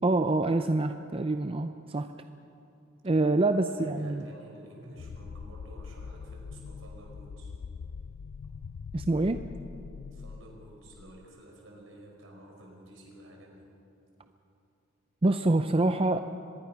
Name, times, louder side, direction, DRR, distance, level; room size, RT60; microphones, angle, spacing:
voice 1, 0.0-2.1 3.0-4.2 8.9-9.4 15.2-16.2, right 2 dB, 25° right, 8 dB, 0.5 m, -26 dB
voice 2, 3.4-7.5 10.1-13.7, right 1 dB, 70° right, 0 dB, 5.3 m, -51 dB
sound 1, 5.0-11.2, left 5 dB, 90° left, 0.4 m, -43 dB
24.0 x 21.0 x 5.9 m, 2.8 s
head